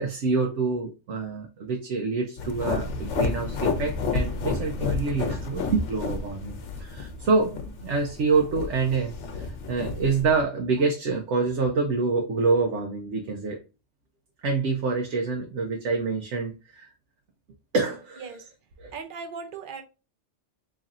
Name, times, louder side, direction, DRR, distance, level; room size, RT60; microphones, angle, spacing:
voice 1, 0.0-13.6 14.4-16.9 17.7-18.3 18.8-18.9, right 4 dB, 80° right, 1.0 m, -26 dB
sound 1, 2.4-10.4, left 4 dB, 85° left, 1.0 m, -31 dB
voice 2, 18.2-18.5 18.9-19.8, right 5 dB, 55° right, 0.8 m, -38 dB
4.1 x 3.1 x 2.4 m
omnidirectional pair, 1.2 m